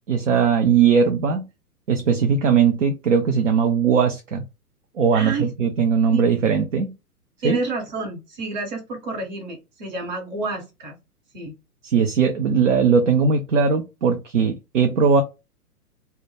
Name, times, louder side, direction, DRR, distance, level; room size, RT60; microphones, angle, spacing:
voice 1, 0.1-1.5 1.9-4.4 5.0-6.9 7.4-7.6 11.8-15.2, right 6 dB, 55° right, 0.5 m, -19 dB
voice 2, 5.1-5.5 6.1-6.2 7.4-10.9 11.3-11.5, right 3 dB, 30° right, 0.9 m, -29 dB
2.1 x 2.1 x 3.1 m
figure-of-eight pair, 120°, 47 cm